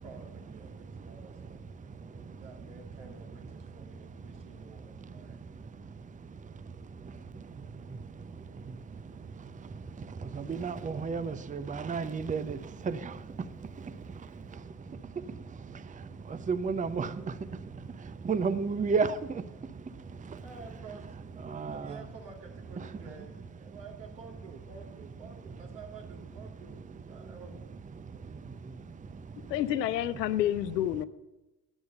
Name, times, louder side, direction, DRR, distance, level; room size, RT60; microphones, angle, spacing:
voice 1, 0.0-5.4 9.0-9.3 20.4-21.1 21.7-26.8 27.1-27.6 28.8-29.1, right 4 dB, 75° right, 0 dB, 2.3 m, -51 dB
voice 2, 10.3-12.6 12.9-13.0 16.5-17.1 18.2-19.1 21.5-21.9, right 5 dB, 15° right, 14 dB, 0.6 m, -30 dB
voice 3, 29.4-31.0, left 12 dB, 85° left, 14 dB, 0.6 m, -29 dB
9.4 x 7.9 x 7.8 m, 1.0 s
hypercardioid pair, 50°, 48 cm